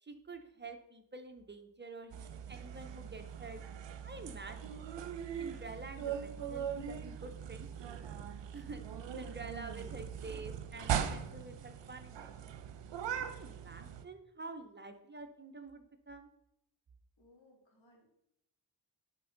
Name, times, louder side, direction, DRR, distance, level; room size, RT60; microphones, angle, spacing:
voice 1, 0.0-3.6 4.0-5.0 5.4-8.1 8.5-8.8 9.2-12.5 13.0-16.3, right 3 dB, 25° right, 6 dB, 0.6 m, -49 dB
sound 1, 2.1-14.0, right 8 dB, 70° right, 0.7 m, -40 dB
voice 2, 17.2-18.1, left 1 dB, 85° left, 0 dB, 2.3 m, -64 dB
11.5 x 4.3 x 3.8 m, 0.80 s
wide cardioid pair, 140°, 44 cm